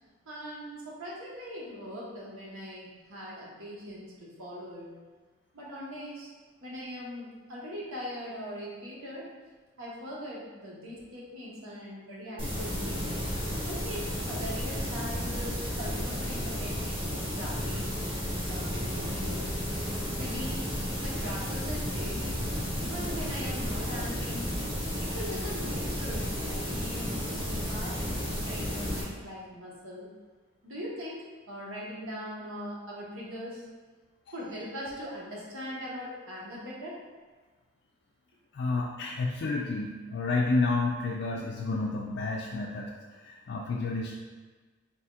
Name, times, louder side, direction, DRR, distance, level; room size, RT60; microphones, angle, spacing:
voice 1, 0.2-4.9 5.5-6.3 6.6-9.3 9.8-13.1 13.7-17.9 18.5-19.5 20.1-22.5 22.8-24.5 25.0-30.1 30.6-33.6 34.3-37.0, equal, 85° right, -5 dB, 1.2 m, -41 dB
sound 1, 12.4-29.0, equal, 25° right, 1.1 m, -33 dB
voice 2, 38.5-42.9 43.2-44.2, left 3 dB, 55° left, -2 dB, 0.3 m, -30 dB
4.3 x 4.2 x 2.4 m, 1.4 s
head